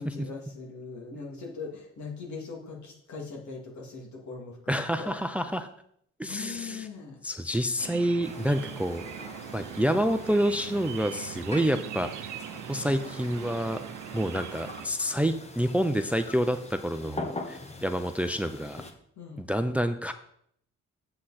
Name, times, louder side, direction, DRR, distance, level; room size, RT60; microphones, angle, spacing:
voice 1, 0.0-5.1 6.2-7.2 19.2-19.4, left 4 dB, 70° left, -1 dB, 2.7 m, -40 dB
voice 2, 4.7-5.7 6.2-6.9 7.2-9.0 9.5-12.3 12.7-13.8 14.1-18.8 19.4-20.1, equal, 5° right, 9 dB, 0.5 m, -28 dB
sound 1, 7.8-14.9, right 11 dB, 80° right, 0.7 m, -41 dB
sound 2, 8.2-18.9, left 2 dB, 20° left, 1.1 m, -43 dB
7.8 x 7.7 x 4.3 m, 0.69 s
cardioid pair, 90°, 30 cm